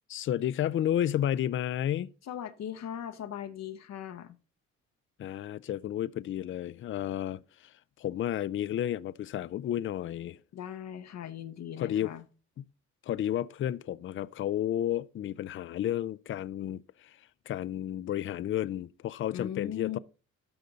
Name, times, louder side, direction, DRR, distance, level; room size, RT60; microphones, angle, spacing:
voice 1, 0.1-2.1 5.2-10.4 11.8-12.1 12.6-12.7 13.0-17.2 17.5-20.0, left 11 dB, 45° left, 0.4 m, -32 dB
voice 2, 2.2-4.4 10.5-12.3 19.3-20.0, left 10 dB, 60° left, 0.8 m, -39 dB
13.0 x 5.0 x 3.9 m
cardioid pair, 90°, 30 cm